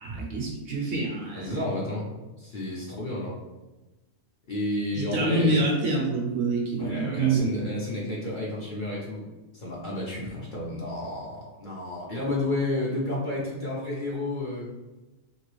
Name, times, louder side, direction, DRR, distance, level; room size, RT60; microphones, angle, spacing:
voice 1, 0.0-1.6 4.9-7.5, right 3 dB, 65° right, 0 dB, 0.9 m, -26 dB
voice 2, 1.3-2.1 2.4-3.3 4.5-5.6 6.8-9.2 9.5-14.7, left 1 dB, 45° left, -5 dB, 0.8 m, -31 dB
3.0 x 2.8 x 3.0 m, 1.1 s
omnidirectional pair, 1.4 m